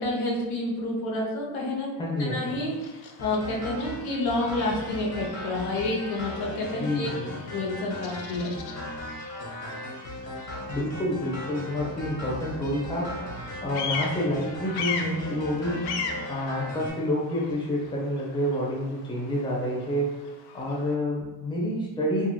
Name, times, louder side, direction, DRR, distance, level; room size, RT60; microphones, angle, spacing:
voice 1, 0.0-1.9 2.3-7.1 7.5-8.5, left 2 dB, 75° left, -1 dB, 0.9 m, -29 dB
voice 2, 2.0-2.6 6.7-7.3 10.7-13.2 13.6-15.9 16.2-20.2 20.5-22.3, left 1 dB, 10° left, -3 dB, 0.6 m, -28 dB
Bird vocalization bird call bird song, 2.2-21.0, left 5 dB, 55° left, 0.5 m, -40 dB
sound 1, 3.2-16.9, left 1 dB, 30° left, 1.0 m, -38 dB
2.9 x 2.4 x 2.3 m, 1.1 s
supercardioid pair, 85°, 50 cm